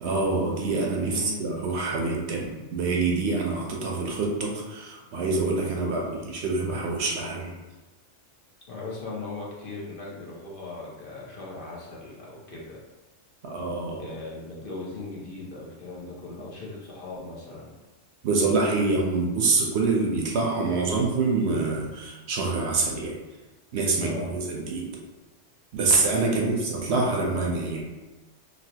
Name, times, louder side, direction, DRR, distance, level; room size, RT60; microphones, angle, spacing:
voice 1, 0.0-7.5 13.4-14.1 18.2-23.2 23.7-24.9 25.7-27.8, right 3 dB, 70° right, -1 dB, 0.8 m, -26 dB
voice 2, 1.0-1.4 8.7-12.8 14.0-17.7 24.0-24.4 26.3-26.4, left 3 dB, 55° left, -4 dB, 0.7 m, -38 dB
3.1 x 2.7 x 2.7 m, 1.2 s
omnidirectional pair, 1.3 m